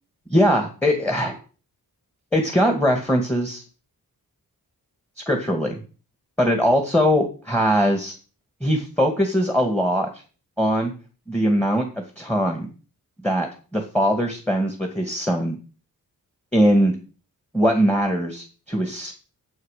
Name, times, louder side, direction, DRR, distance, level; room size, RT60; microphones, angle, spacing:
voice 1, 0.3-1.4 2.3-3.6 5.3-5.8 6.4-8.1 8.6-10.1 10.6-10.9 11.3-11.9 12.2-12.7 13.2-15.6 16.5-16.9 17.5-19.1, equal, 5° left, 3 dB, 2.1 m, -21 dB
9.3 x 8.1 x 6.6 m, 0.36 s
wide cardioid pair, 130°, 36 cm